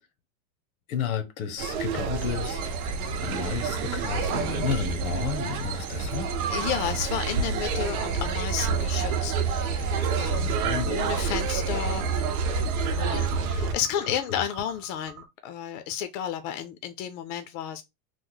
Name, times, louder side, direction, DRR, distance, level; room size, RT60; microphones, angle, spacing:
voice 1, 0.9-2.6 3.2-6.3 10.3-11.0 14.1-14.4, left 8 dB, 90° left, 0.9 m, -32 dB
sound 1, 1.6-13.7, right 5 dB, 90° right, 0.8 m, -28 dB
sound 2, 2.2-14.1, right 9 dB, 55° right, 0.7 m, -42 dB
voice 2, 6.5-12.1 13.0-17.8, left 10 dB, 60° left, 0.5 m, -32 dB
sound 3, 10.3-15.3, right 6 dB, 25° right, 1.0 m, -46 dB
3.1 x 2.1 x 3.7 m
supercardioid pair, 165°, 42 cm